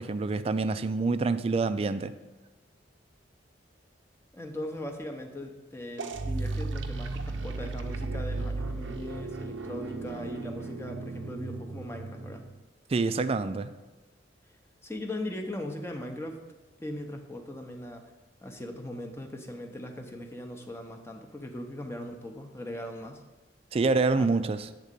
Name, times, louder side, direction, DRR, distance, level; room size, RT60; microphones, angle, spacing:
voice 1, 0.0-2.1 12.9-13.7 23.7-24.7, right 3 dB, 30° right, 0.3 m, -27 dB
voice 2, 4.3-12.5 14.8-16.4 16.8-18.0 18.4-23.2 24.2-24.3, left 1 dB, 15° left, 0.7 m, -39 dB
sound 1, 6.0-12.6, right 3 dB, 80° right, 0.6 m, -35 dB
8.4 x 3.7 x 6.7 m
head